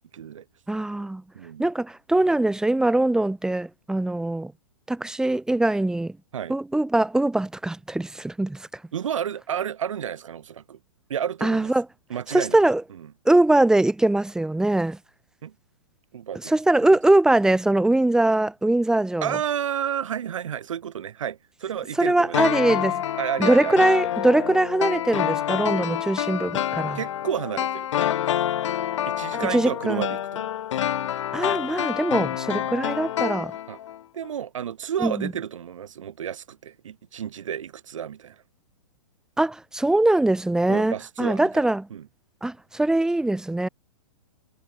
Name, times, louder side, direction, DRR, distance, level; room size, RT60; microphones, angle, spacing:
voice 1, 0.1-0.4 1.3-1.7 6.3-6.5 8.9-10.8 11.1-11.7 12.1-12.6 12.9-13.1 15.4-15.5 16.1-16.5 19.2-22.4 23.2-23.8 26.9-27.9 29.1-30.5 32.5-32.7 33.7-33.8 34.1-38.4 40.7-42.1, right 9 dB, 65° right, 3.2 m, -31 dB
voice 2, 0.7-1.2 1.6-4.5 4.9-6.2 6.5-8.7 11.4-11.8 12.3-12.8 13.2-15.0 16.4-19.4 22.0-23.0 23.4-27.0 29.5-30.1 31.3-33.5 35.0-35.3 39.4-41.9 42.4-43.7, right 2 dB, 5° right, 1.1 m, -22 dB
sound 1, 22.3-34.0 34.2-34.3, left 11 dB, 60° left, 0.6 m, -27 dB
figure-of-eight pair, 115°, 18 cm